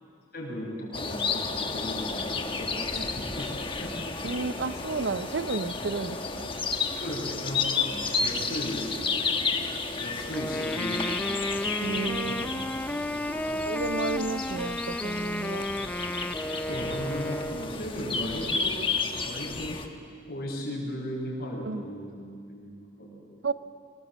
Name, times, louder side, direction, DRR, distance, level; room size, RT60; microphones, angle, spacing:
voice 1, 0.3-3.5 3.8-3.9 7.0-8.9 10.0-11.2 11.8-12.4 13.1-13.5 13.7-13.8 16.7-18.8 19.2-19.8 20.3-22.1 22.5-23.4, equal, 55° left, -1 dB, 5.7 m, -36 dB
sound 1, 0.9-19.9, left 4 dB, 30° left, 1.2 m, -32 dB
voice 2, 4.2-6.5 11.8-12.6 12.9-13.0 13.7-15.7 21.6-21.9 23.4-23.5, right 4 dB, 70° right, 14 dB, 0.6 m, -32 dB
Wind instrument woodwind instrument, 10.3-17.9, left 1 dB, 10° left, 0.4 m, -33 dB
23.5 x 19.0 x 7.5 m, 2.3 s
head